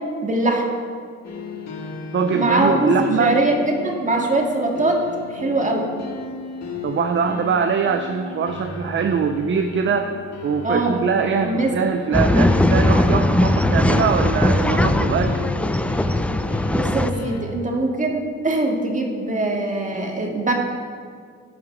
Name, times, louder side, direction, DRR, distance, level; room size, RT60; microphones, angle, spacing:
voice 1, 0.2-0.7 2.3-5.1 5.3-5.9 10.6-11.0 11.4-11.8 16.7-20.5, right 2 dB, 25° right, 1 dB, 1.9 m, -22 dB
sound 1, 1.2-17.4, left 4 dB, 60° left, 2.1 m, -34 dB
voice 2, 2.1-3.4 6.8-10.1 10.4-15.4, right 6 dB, 40° right, 7 dB, 0.6 m, -22 dB
Male speech man speaking / Chatter / Rattle, 12.1-17.1, left 1 dB, 5° left, 0.4 m, -19 dB
16.0 x 5.9 x 4.4 m, 2.1 s
cardioid pair, 90°, 30 cm